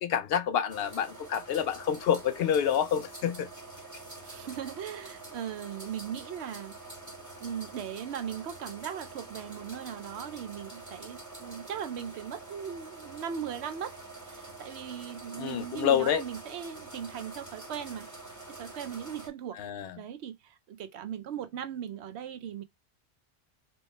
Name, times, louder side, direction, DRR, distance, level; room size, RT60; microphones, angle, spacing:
voice 1, 0.0-3.5 15.4-16.2 19.6-19.9, left 9 dB, 70° left, 0.8 m, -28 dB
sound 1, 0.7-19.3, right 2 dB, 15° right, 1.3 m, -46 dB
voice 2, 4.2-6.8 7.4-14.0 14.2-18.1 18.5-19.6 20.0-22.6, right 8 dB, 75° right, 0.9 m, -38 dB
3.1 x 3.1 x 3.1 m
omnidirectional pair, 1.1 m